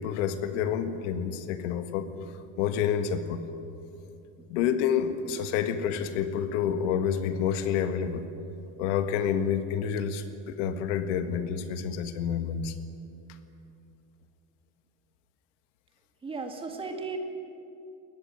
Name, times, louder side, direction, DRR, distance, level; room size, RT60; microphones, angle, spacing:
voice 1, 0.0-2.1 2.6-3.5 4.5-8.3 8.8-12.8, left 8 dB, 80° left, 9 dB, 1.8 m, -28 dB
voice 2, 16.2-17.2, right 4 dB, 15° right, 4 dB, 1.9 m, -35 dB
22.0 x 19.5 x 9.0 m, 2.7 s
cardioid pair, 175°, 36 cm